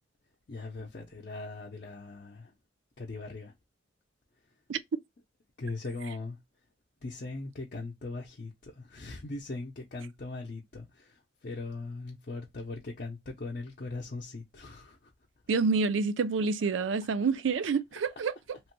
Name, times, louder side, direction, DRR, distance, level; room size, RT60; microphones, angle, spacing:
voice 1, 0.5-2.5 3.0-3.5 5.6-6.4 7.0-11.1 11.4-15.0 17.0-17.3 18.5-18.6, left 3 dB, 50° left, 0.6 m, -40 dB
voice 2, 15.5-18.3, right 5 dB, 75° right, 0.4 m, -28 dB
3.0 x 2.1 x 3.0 m
head